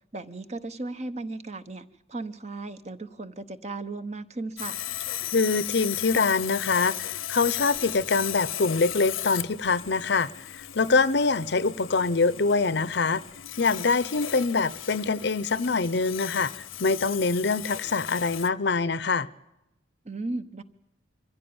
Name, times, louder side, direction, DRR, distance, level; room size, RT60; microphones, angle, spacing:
voice 1, 0.1-4.8 20.0-20.6, right 2 dB, 35° right, 1.0 m, -36 dB
Sawing, 4.6-18.5, left 13 dB, 85° left, 0.8 m, -36 dB
voice 2, 5.3-13.2 13.6-19.3, left 4 dB, 55° left, 0.7 m, -24 dB
24.5 x 15.5 x 8.8 m
head